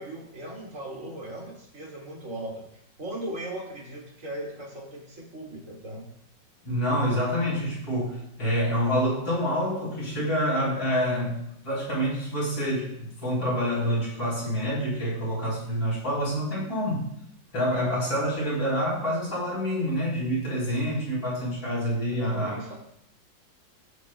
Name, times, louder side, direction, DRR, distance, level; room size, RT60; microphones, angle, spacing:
voice 1, 0.0-6.1 22.2-22.8, right 1 dB, 45° right, -2 dB, 2.5 m, -38 dB
voice 2, 6.6-11.4 11.6-17.1 17.5-22.6, equal, 90° left, -6 dB, 4.8 m, -27 dB
14.5 x 8.0 x 2.2 m, 0.76 s
omnidirectional pair, 2.0 m